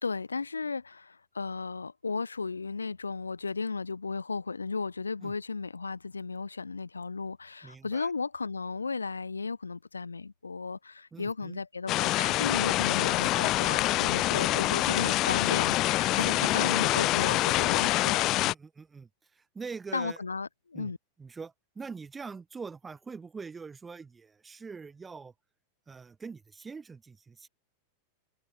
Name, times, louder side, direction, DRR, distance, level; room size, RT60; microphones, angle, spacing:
voice 1, 0.0-18.3 19.9-21.0, left 4 dB, 75° left, 4.2 m, -35 dB
voice 2, 7.6-8.1 11.1-11.6 12.7-12.9 14.3-15.0 16.2-16.4 18.4-20.2 20.7-20.9 21.2-25.3 25.9-27.5, right 5 dB, 15° right, 3.4 m, -44 dB
sound 1, 11.9-18.5, left 17 dB, 35° left, 0.7 m, -26 dB
figure-of-eight pair, 90°, 0 cm